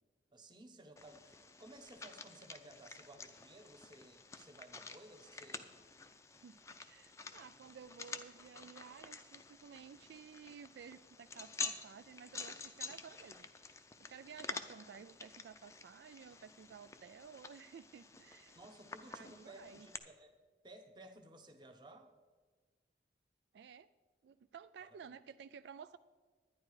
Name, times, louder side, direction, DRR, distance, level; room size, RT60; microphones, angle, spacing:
voice 1, 0.3-5.8 18.5-20.3 20.6-22.1 24.8-25.2, right 1 dB, 25° right, 5 dB, 1.0 m, -57 dB
sound 1, 1.0-20.0, left 4 dB, 15° left, 0.5 m, -49 dB
voice 2, 6.4-13.5 14.1-18.6 19.1-19.9 23.5-23.9 24.2-26.0, right 7 dB, 75° right, 13 dB, 0.3 m, -54 dB
11.0 x 10.0 x 4.8 m, 1.4 s
head